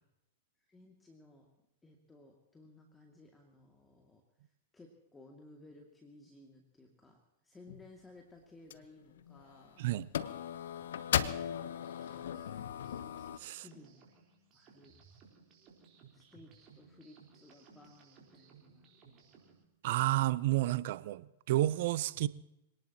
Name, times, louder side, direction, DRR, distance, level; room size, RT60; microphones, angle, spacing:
voice 1, 0.7-1.5 1.8-4.2 4.7-9.8 13.5-14.0 14.5-15.0 16.1-19.5, left 2 dB, 10° left, 2.4 m, -58 dB
sound 1, 7.7-7.9 8.7-8.8 9.2-9.7 10.1-13.4, left 9 dB, 65° left, 0.8 m, -37 dB
sound 2, 11.3-19.6, right 5 dB, 35° right, 4.2 m, -62 dB
voice 2, 19.8-22.3, right 15 dB, 55° right, 0.7 m, -31 dB
25.0 x 18.5 x 3.0 m
figure-of-eight pair, 100°, 0 cm